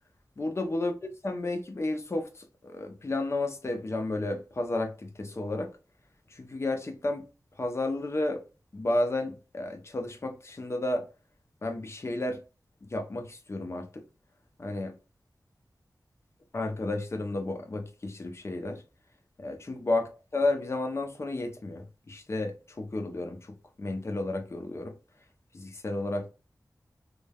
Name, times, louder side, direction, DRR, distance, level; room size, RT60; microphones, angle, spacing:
voice 1, 0.4-0.9 1.2-5.7 6.3-7.2 7.6-8.4 8.7-11.0 11.6-12.4 12.8-14.0 14.6-14.9 16.5-18.8 19.4-24.9 25.5-26.3, left 2 dB, 40° left, 0.5 m, -32 dB
3.1 x 2.1 x 2.2 m
wide cardioid pair, 95°, 7 cm